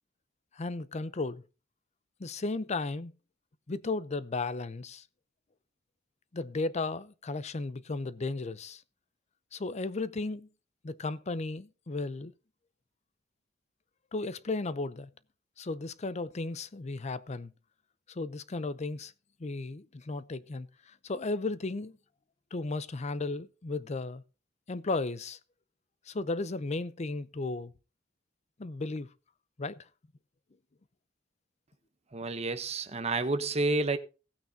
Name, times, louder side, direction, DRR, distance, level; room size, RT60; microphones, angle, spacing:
voice 1, 0.5-1.4 2.2-3.1 3.7-5.0 6.3-8.8 9.5-10.5 10.8-12.3 14.1-15.1 15.6-17.5 18.1-19.1 19.4-22.0 22.5-24.2 24.7-25.4 26.1-27.7 28.6-29.1 29.6-29.8, left 3 dB, 35° left, 0.6 m, -35 dB
voice 2, 32.1-34.0, right 2 dB, 35° right, 0.8 m, -29 dB
16.0 x 9.2 x 2.7 m
head